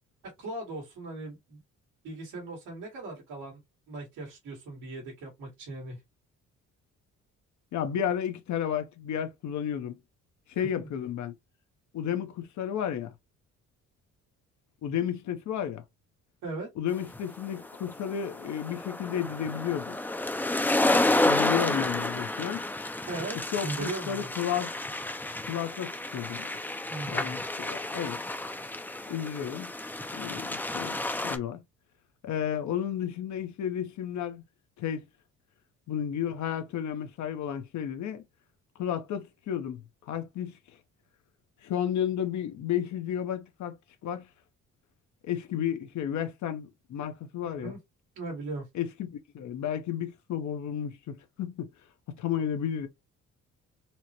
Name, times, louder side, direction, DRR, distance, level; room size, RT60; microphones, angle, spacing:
voice 1, 0.4-1.6 2.0-3.6 3.9-6.0 10.8-10.9 16.4-16.7 23.1-24.3 26.9-27.4 47.4-47.8 48.2-48.7, right 2 dB, 90° right, 2.0 m, -38 dB
voice 2, 7.7-10.0 10.5-11.3 11.9-13.1 14.8-15.8 16.8-20.0 21.2-22.6 23.5-24.7 25.5-26.5 27.1-28.2 29.1-29.7 30.1-31.0 31.2-31.6 32.2-34.4 34.8-35.0 35.9-38.2 38.8-39.8 40.1-40.6 41.6-43.8 44.0-44.3 45.2-47.7 48.7-51.7 52.2-52.9, left 9 dB, 70° left, 0.8 m, -32 dB
sound 1, 17.1-31.4, left 2 dB, 5° left, 0.4 m, -30 dB
4.3 x 2.1 x 2.8 m
cardioid pair, 90°, 30 cm